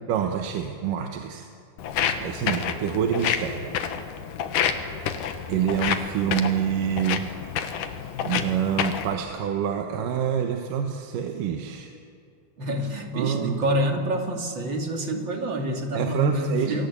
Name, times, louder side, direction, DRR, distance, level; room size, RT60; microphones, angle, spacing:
voice 1, 0.1-1.5 2.2-3.7 5.1-7.3 8.0-11.9 13.1-13.6 15.9-16.9, right 8 dB, 90° right, 4 dB, 2.8 m, -27 dB
Walk footsteps, 1.8-9.1, left 8 dB, 75° left, 2.9 m, -29 dB
voice 2, 12.6-16.9, equal, 40° right, 3 dB, 2.9 m, -27 dB
28.5 x 22.5 x 8.4 m, 2.4 s
omnidirectional pair, 3.7 m